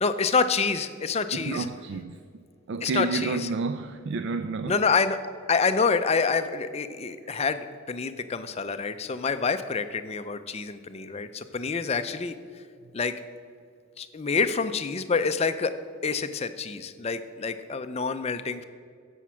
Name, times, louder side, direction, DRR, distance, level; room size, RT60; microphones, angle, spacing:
voice 1, 0.0-1.7 2.8-3.5 4.7-12.6 12.9-13.2 14.0-18.6, left 4 dB, 30° left, 0.4 m, -27 dB
voice 2, 1.3-2.2 2.7-4.8, right 4 dB, 55° right, 0.3 m, -30 dB
10.0 x 7.2 x 6.1 m
head